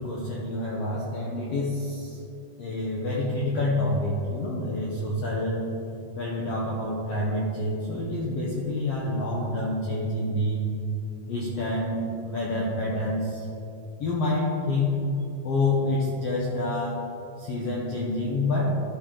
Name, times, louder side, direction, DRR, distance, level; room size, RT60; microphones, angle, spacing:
voice 1, 0.0-2.2 2.6-5.6 6.1-10.6 11.3-13.5 14.0-15.0 15.4-17.1 17.4-18.8, left 2 dB, 75° left, -4 dB, 1.4 m, -27 dB
12.5 x 4.5 x 3.8 m, 2.7 s
omnidirectional pair, 3.8 m